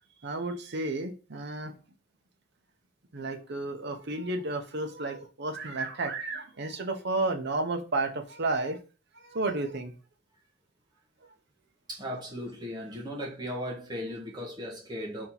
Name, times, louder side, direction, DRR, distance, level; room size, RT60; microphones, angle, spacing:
voice 1, 0.2-1.7 3.1-8.8 9.2-9.9, right 2 dB, 60° right, 0.8 m, -32 dB
voice 2, 11.9-15.3, equal, 20° right, 1.2 m, -37 dB
4.2 x 2.9 x 4.2 m
head